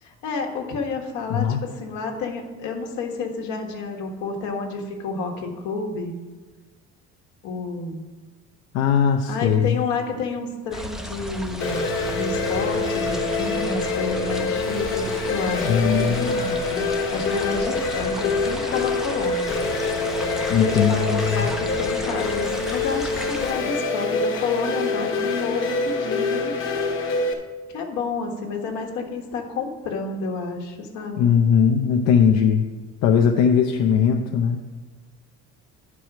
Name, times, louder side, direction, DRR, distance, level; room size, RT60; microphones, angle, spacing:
voice 1, 0.0-6.1 7.4-8.1 9.3-19.5 20.6-26.5 27.7-31.3, left 4 dB, 80° left, 3 dB, 1.5 m, -30 dB
voice 2, 8.7-9.8 15.6-16.5 20.5-21.5 31.2-32.7 33.0-34.6, left 7 dB, 65° left, 3 dB, 0.6 m, -19 dB
sound 1, 10.7-23.5, equal, ahead, 0.4 m, -35 dB
sound 2, 11.6-27.3, left 3 dB, 45° left, 1.1 m, -25 dB
10.0 x 4.8 x 5.9 m, 1.3 s
cardioid pair, 175°, 29 cm